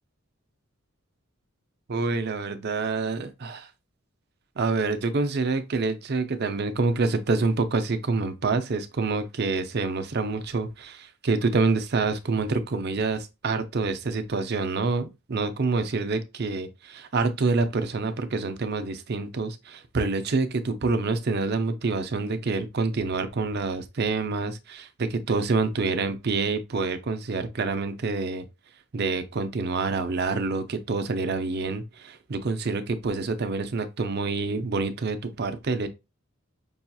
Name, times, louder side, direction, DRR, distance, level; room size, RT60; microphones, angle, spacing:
voice 1, 1.9-3.7 4.6-28.4 28.9-35.9, right 3 dB, 50° right, 0.6 m, -27 dB
5.4 x 2.8 x 2.3 m
head